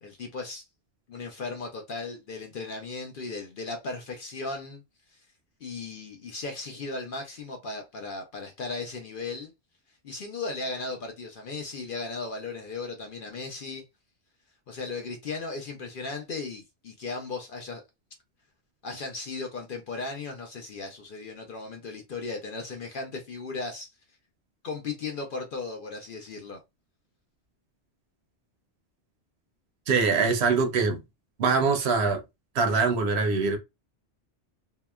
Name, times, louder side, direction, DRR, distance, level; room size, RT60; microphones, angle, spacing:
voice 1, 0.0-0.7 1.1-4.8 5.1-5.2 5.6-9.5 10.0-13.8 14.7-17.8 18.8-23.9 24.6-26.6, left 3 dB, 60° left, 0.6 m, -36 dB
voice 2, 29.9-31.0 31.4-32.2 32.5-33.6, right 4 dB, 70° right, 0.8 m, -23 dB
2.8 x 2.1 x 2.2 m
omnidirectional pair, 1.2 m